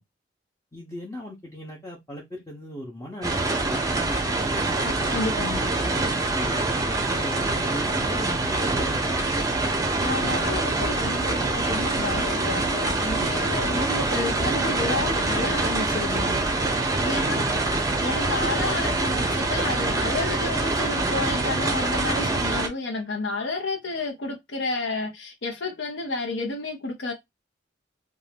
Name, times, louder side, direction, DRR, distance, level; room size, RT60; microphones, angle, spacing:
voice 1, 0.7-3.8 4.2-4.6 5.4-6.1 6.4-9.2 17.1-17.6, equal, 15° left, 0.7 m, -38 dB
sound 1, 3.2-22.7, right 2 dB, 20° right, 0.6 m, -25 dB
voice 2, 4.8-5.7 10.0-16.4 17.0-17.7 18.0-27.1, left 3 dB, 75° left, 0.8 m, -31 dB
2.6 x 2.3 x 3.3 m
head